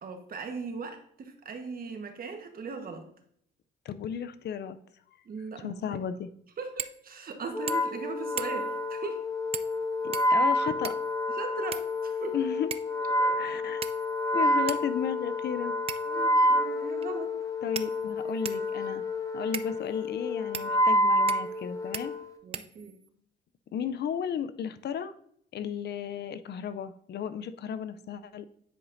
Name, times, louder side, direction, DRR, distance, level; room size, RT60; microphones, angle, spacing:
voice 1, 0.0-3.1 5.2-6.0 6.6-9.2 11.3-12.4 13.2-13.4 14.3-14.5 16.0-17.4 22.4-23.0, right 4 dB, 50° right, 5 dB, 1.2 m, -39 dB
voice 2, 3.9-4.8 5.6-6.3 10.0-11.0 12.3-12.7 13.4-13.8 14.3-15.8 17.6-19.0 19.3-22.1 23.7-25.1 25.5-28.5, left 8 dB, 60° left, 13 dB, 0.5 m, -34 dB
sound 1, 6.8-7.0 7.3-7.4 7.7-8.0 8.4-8.8 9.5-9.8 10.1-11.1 11.7-12.3 12.7-13.0 13.8-14.2 14.7-14.8 15.9-16.2 17.0-17.1 17.7-18.7 19.5-19.7 20.5-20.7 21.3-21.6 21.9-22.1 22.5-23.1, right 7 dB, 30° right, 0.4 m, -38 dB
Wind instrument woodwind instrument, 7.5-22.3, left 1 dB, 15° left, 0.9 m, -28 dB
9.8 x 5.0 x 2.6 m, 0.67 s
cardioid pair, 90°, 20 cm